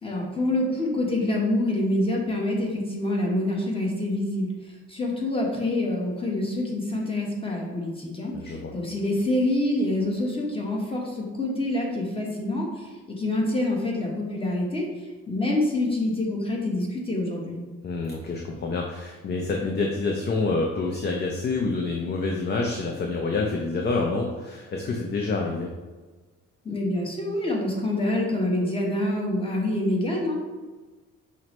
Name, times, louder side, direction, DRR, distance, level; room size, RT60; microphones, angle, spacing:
voice 1, 0.0-4.5 4.9-14.8 15.3-17.6 26.6-30.3, left 1 dB, 20° left, -2 dB, 1.0 m, -26 dB
voice 2, 8.3-8.7 17.8-25.7, left 3 dB, 35° left, 1 dB, 0.5 m, -27 dB
5.7 x 2.1 x 3.0 m, 1.3 s
cardioid pair, 90°, 30 cm